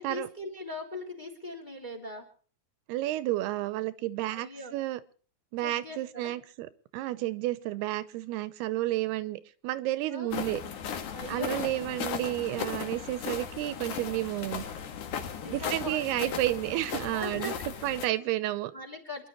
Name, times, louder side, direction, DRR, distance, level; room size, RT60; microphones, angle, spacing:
voice 1, 0.0-2.3 4.3-4.7 5.6-6.3 10.1-10.3 11.1-11.6 15.4-16.4 17.1-17.9 18.2-18.3 18.7-19.3, left 2 dB, 15° left, 3 dB, 2.1 m, -40 dB
voice 2, 2.9-5.0 5.5-6.7 6.9-10.6 11.3-14.7 15.5-17.5 17.8-18.7, right 16 dB, 85° right, 14 dB, 2.8 m, -31 dB
sound 1, 10.3-18.1, left 7 dB, 60° left, 2.6 m, -37 dB
27.5 x 11.0 x 3.1 m, 0.43 s
omnidirectional pair, 4.5 m